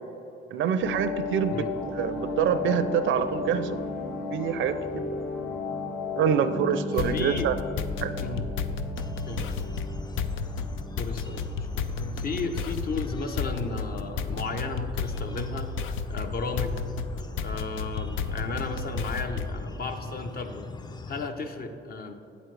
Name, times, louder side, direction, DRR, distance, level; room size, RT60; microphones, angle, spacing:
voice 1, 0.5-1.6 2.0-3.8 4.3-5.0 6.2-7.5 8.0-8.1, right 8 dB, 75° right, 12 dB, 0.5 m, -26 dB
sound 1, 0.8-14.7, left 3 dB, 70° left, 1.6 m, -35 dB
voice 2, 6.9-7.5 8.2-8.5 9.3-9.4 11.0-15.7 16.1-16.8 17.4-20.7 21.1-22.1, left 4 dB, 50° left, 6 dB, 0.8 m, -34 dB
sound 2, 7.0-19.7, left 4 dB, 90° left, 0.4 m, -32 dB
sound 3, 9.0-21.3, left 3 dB, 20° left, 0.4 m, -42 dB
8.7 x 8.0 x 3.3 m, 2.8 s
cardioid pair, 90°, 20 cm